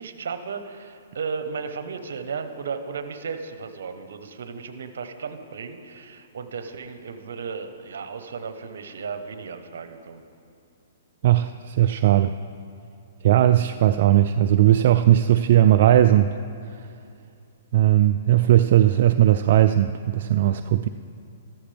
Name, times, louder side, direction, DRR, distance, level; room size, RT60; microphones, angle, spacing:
voice 1, 0.0-10.2, right 5 dB, 75° right, 8 dB, 1.0 m, -35 dB
voice 2, 11.2-12.3 13.2-16.3 17.7-20.9, right 12 dB, 55° right, 9 dB, 0.3 m, -18 dB
14.0 x 13.0 x 3.4 m, 2.5 s
hypercardioid pair, 145°, 0 cm